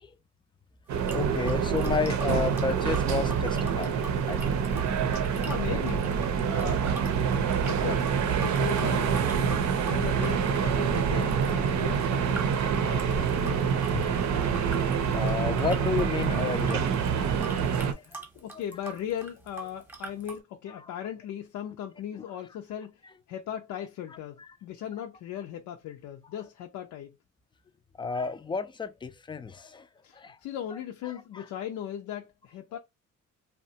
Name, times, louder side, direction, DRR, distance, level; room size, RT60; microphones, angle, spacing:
sound 1, 0.9-20.4, right 3 dB, 5° right, 0.9 m, -43 dB
sound 2, 0.9-17.9, right 7 dB, 70° right, 0.6 m, -26 dB
voice 1, 1.1-4.0 4.3-4.6 13.5-13.6 13.9-14.2 15.1-17.4 17.7-18.2 24.4-24.5 28.0-29.9 30.1-30.4, left 5 dB, 15° left, 0.3 m, -32 dB
voice 2, 5.1-6.2 6.5-6.9 7.7-14.1 17.9-23.0 23.3-27.1 30.0-32.8, left 10 dB, 75° left, 0.5 m, -38 dB
2.8 x 2.1 x 2.7 m
cardioid pair, 90°, 30 cm